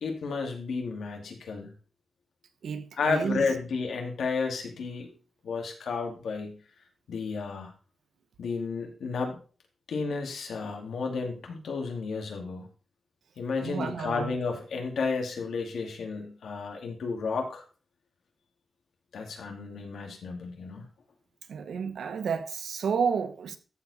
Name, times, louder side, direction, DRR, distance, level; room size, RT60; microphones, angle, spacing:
voice 1, 0.0-1.7 3.0-5.1 5.4-6.6 7.1-7.7 8.4-9.4 9.9-12.7 13.4-17.6 19.1-20.8, left 4 dB, 80° left, 2.3 m, -32 dB
voice 2, 2.6-3.4 13.6-14.4 21.5-23.6, right 6 dB, 80° right, 1.0 m, -31 dB
13.5 x 4.9 x 4.1 m
wide cardioid pair, 160°, 0 cm